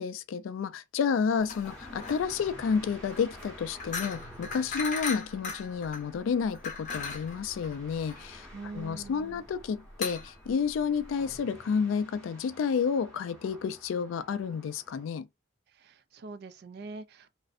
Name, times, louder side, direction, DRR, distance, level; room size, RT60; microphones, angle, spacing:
voice 1, 0.0-8.5 8.7-15.3, left 6 dB, 85° left, 0.3 m, -30 dB
sound 1, 1.4-11.4, left 4 dB, 40° left, 0.7 m, -39 dB
sound 2, 1.6-15.1, equal, 5° left, 0.8 m, -51 dB
voice 2, 8.5-9.4 15.7-17.3, right 3 dB, 55° right, 0.3 m, -44 dB
2.5 x 2.0 x 2.4 m
head